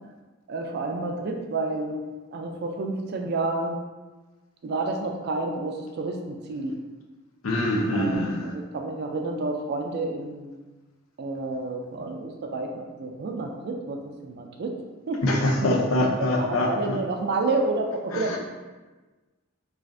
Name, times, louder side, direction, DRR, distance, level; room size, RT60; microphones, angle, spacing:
voice 1, 0.5-2.0 2.3-3.8 4.6-6.7 7.9-10.5 11.2-14.8 15.1-18.4, right 2 dB, 50° right, 2 dB, 0.3 m, -30 dB
voice 2, 7.4-8.5 15.2-17.0 18.1-18.4, left 1 dB, 70° left, 0 dB, 0.5 m, -24 dB
3.1 x 2.4 x 2.5 m, 1.2 s
head